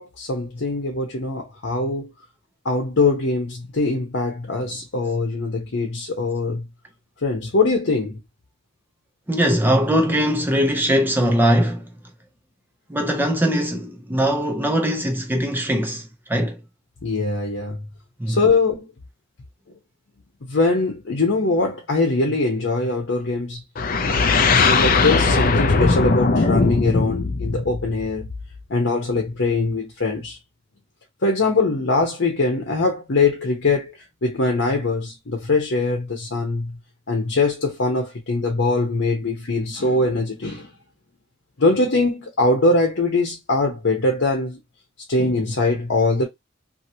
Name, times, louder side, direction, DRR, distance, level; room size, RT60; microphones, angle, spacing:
voice 1, 0.0-2.1 2.6-6.7 7.2-8.2 17.0-17.9 18.3-18.9 20.5-23.6 24.6-28.3 28.7-30.4 31.2-33.9 34.2-36.8 37.1-40.7 41.6-44.6 45.1-46.2, left 3 dB, 70° left, 0.9 m, -22 dB
voice 2, 9.3-11.8 12.9-16.0 16.3-16.6 18.2-18.4, equal, 10° right, 0.5 m, -20 dB
sound 1, 23.8-28.6, left 4 dB, 50° left, 0.5 m, -19 dB
2.9 x 2.7 x 2.7 m
head